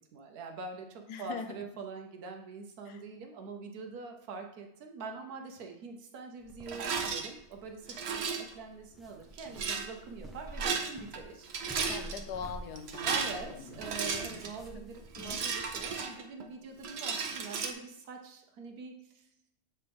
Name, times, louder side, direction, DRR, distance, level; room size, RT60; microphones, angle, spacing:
voice 1, 0.1-11.5 13.0-19.3, right 4 dB, 70° right, 4 dB, 1.3 m, -44 dB
voice 2, 1.1-1.6 2.9-3.0 11.9-14.5 14.7-14.8 15.2-15.4, left 6 dB, 85° left, 8 dB, 1.3 m, -42 dB
sound 1, 6.4-15.9, right 1 dB, ahead, 0.4 m, -50 dB
Rattle, 6.7-7.3 7.9-8.5 9.4-9.9 10.5-11.2 11.4-12.2 12.8-14.6 15.1-16.4 16.8-17.7, right 5 dB, 55° right, 0.8 m, -34 dB
7.6 x 4.4 x 3.5 m, 0.80 s
omnidirectional pair, 1.7 m